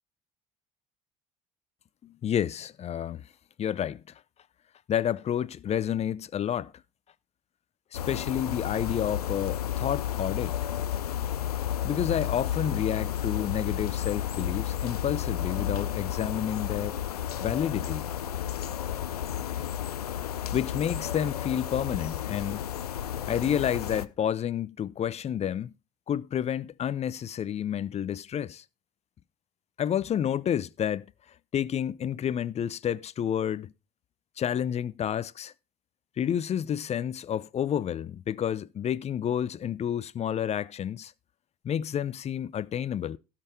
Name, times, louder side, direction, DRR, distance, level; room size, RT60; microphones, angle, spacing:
voice 1, 2.0-3.2 3.6-4.0 4.9-6.7 7.9-10.6 11.8-17.0 17.4-18.1 20.5-22.6 23.3-25.7 26.1-28.6 29.8-31.1 31.5-33.7 34.4-35.5 36.2-41.1 41.6-43.2, left 9 dB, 35° left, 0.6 m, -30 dB
sound 1, 7.9-24.1, left 10 dB, 80° left, 0.6 m, -32 dB
17.5 x 5.8 x 3.5 m
figure-of-eight pair, 60°, 19 cm